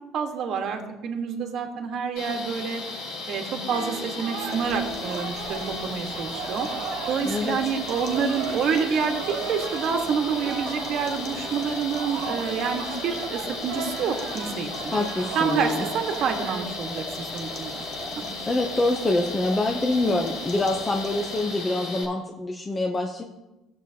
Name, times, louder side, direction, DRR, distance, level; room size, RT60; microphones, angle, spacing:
voice 1, 0.1-2.8 3.3-6.7 7.1-14.9 15.3-17.8 18.2-18.3, right 6 dB, 50° right, 4 dB, 1.4 m, -28 dB
sound 1, 2.2-22.0, left 3 dB, 90° left, 3.6 m, -36 dB
sound 2, 3.7-16.6, right 7 dB, 70° right, 0.8 m, -36 dB
sound 3, 4.3-21.7, left 3 dB, 35° left, 1.0 m, -40 dB
voice 2, 7.2-7.6 14.9-15.9 18.5-23.2, left 2 dB, 15° left, 2 dB, 0.6 m, -25 dB
16.5 x 7.4 x 2.8 m, 1.0 s
cardioid pair, 160°, 0 cm